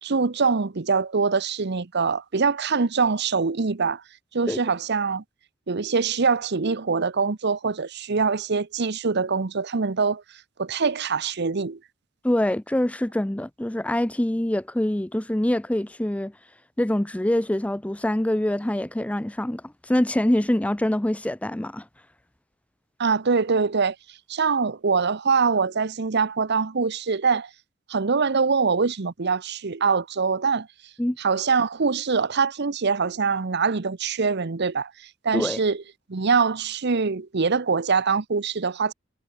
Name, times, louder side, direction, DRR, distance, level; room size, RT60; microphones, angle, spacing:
voice 1, 0.0-4.0 4.3-5.2 5.7-10.2 10.6-11.8 23.0-24.0 24.3-27.5 27.9-30.7 31.2-34.9 35.2-35.8 36.1-38.9, right 5 dB, 55° right, 0.8 m, -23 dB
voice 2, 12.2-16.3 16.8-21.9 31.0-31.2 35.3-35.6, left 1 dB, 5° left, 0.5 m, -25 dB
head